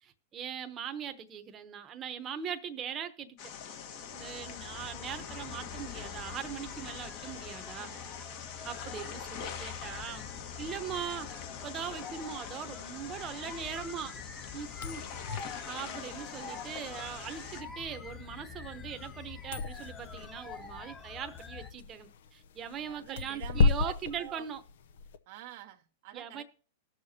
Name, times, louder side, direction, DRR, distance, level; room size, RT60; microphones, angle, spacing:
voice 1, 0.0-3.5 4.1-8.0 8.6-10.2 10.6-11.3 11.6-14.2 14.5-15.1 15.7-24.6 26.1-26.4, right 8 dB, 30° right, 0.9 m, -40 dB
sound 1, 3.4-17.6, left 7 dB, 55° left, 1.5 m, -44 dB
sound 2, 4.0-21.7, left 5 dB, 20° left, 1.1 m, -47 dB
sound 3, 14.7-25.2, left 4 dB, 75° left, 0.7 m, -35 dB
voice 2, 22.7-24.5 25.3-26.4, right 13 dB, 60° right, 0.7 m, -47 dB
20.0 x 6.6 x 2.8 m
hypercardioid pair, 120°, 0 cm